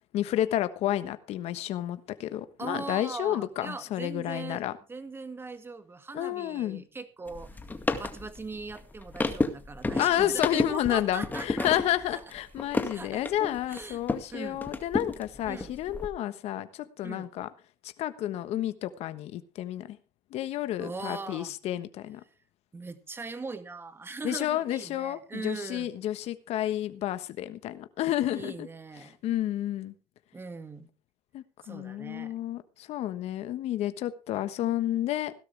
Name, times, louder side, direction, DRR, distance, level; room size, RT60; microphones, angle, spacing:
voice 1, 0.1-4.7 6.1-6.8 10.0-17.5 17.8-20.0 20.3-22.2 24.2-28.7 29.2-29.9 31.3-35.3, left 13 dB, 60° left, 1.3 m, -30 dB
voice 2, 2.6-4.6 4.9-7.6 8.0-11.7 12.1-12.2 12.9-13.2 13.7-14.0 14.3-14.6 15.5-15.7 17.0-17.3 20.8-21.5 22.7-25.9 28.3-29.2 30.3-30.9 31.6-32.3, right 4 dB, 20° right, 2.1 m, -40 dB
sound 1, 7.3-14.3 14.6-16.1, left 3 dB, 15° left, 2.0 m, -32 dB
17.0 x 12.5 x 3.4 m
supercardioid pair, 105°, 12 cm